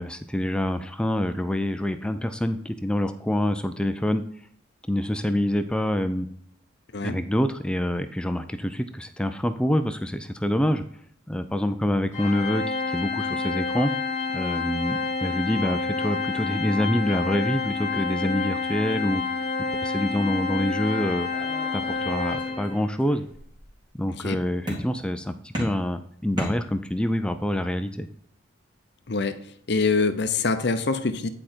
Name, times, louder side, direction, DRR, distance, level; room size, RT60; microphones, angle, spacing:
voice 1, 0.0-4.2 4.9-6.3 7.0-10.8 11.3-13.9 14.3-19.2 19.8-21.3 21.7-23.2 24.0-28.1, left 1 dB, 5° left, 9 dB, 0.4 m, -26 dB
Organ, 12.1-22.9, left 4 dB, 35° left, 1.6 m, -28 dB
sound 1, 21.3-22.7 23.0-23.7 24.7-25.2 25.5-27.1, right 1 dB, 20° right, 2.4 m, -36 dB
voice 2, 29.1-29.4 29.7-31.3, left 4 dB, 55° left, 10 dB, 0.7 m, -24 dB
9.9 x 4.9 x 4.3 m, 0.66 s
head